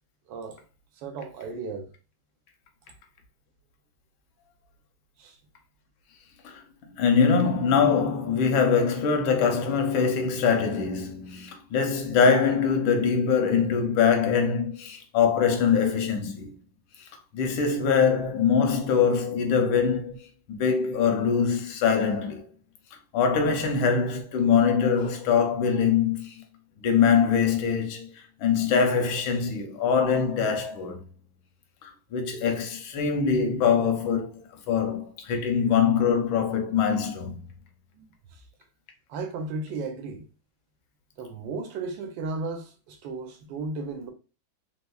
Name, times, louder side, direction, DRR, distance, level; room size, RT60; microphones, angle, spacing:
voice 1, 0.3-0.6 1.0-1.9 5.2-5.4 37.9-38.1 38.3-38.4 39.1-40.3 41.2-44.1, right 3 dB, 75° right, 1.2 m, -35 dB
voice 2, 7.0-16.5 17.3-20.2 20.5-22.5 23.1-26.4 26.8-28.1 28.4-31.0 31.8-37.4, left 6 dB, 85° left, 1.5 m, -23 dB
3.5 x 3.0 x 2.3 m
omnidirectional pair, 2.2 m